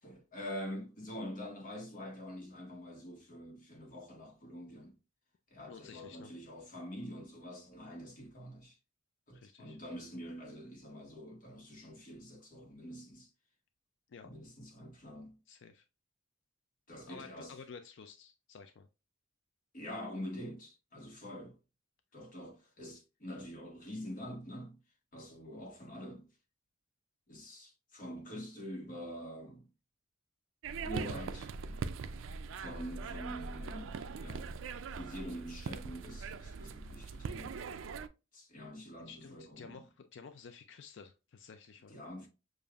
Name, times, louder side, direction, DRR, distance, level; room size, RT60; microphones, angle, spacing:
voice 1, 0.0-4.9 5.5-8.8 9.3-13.3 14.2-15.4 16.9-17.5 19.7-21.6 22.1-24.8 25.1-26.3 27.3-29.7 30.8-31.8 32.5-34.5 34.9-37.6 38.3-39.8 41.9-42.3, equal, 45° left, 1.3 m, -45 dB
voice 2, 5.7-6.3 9.3-9.8 14.1-14.3 15.5-15.8 17.0-18.9 39.1-42.1, left 5 dB, 65° left, 0.4 m, -52 dB
sound 1, 30.6-38.1, right 5 dB, 75° right, 0.4 m, -41 dB
6.8 x 2.6 x 2.4 m
head